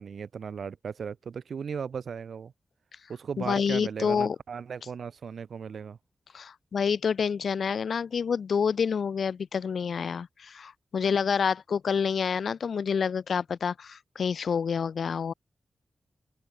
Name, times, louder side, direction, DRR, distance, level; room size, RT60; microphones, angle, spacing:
voice 1, 0.0-2.5 3.1-6.0, right 6 dB, 80° right, 1.3 m, -36 dB
voice 2, 3.4-4.4 6.3-15.3, left 6 dB, 75° left, 0.5 m, -28 dB
open air
wide cardioid pair, 95°, 0 cm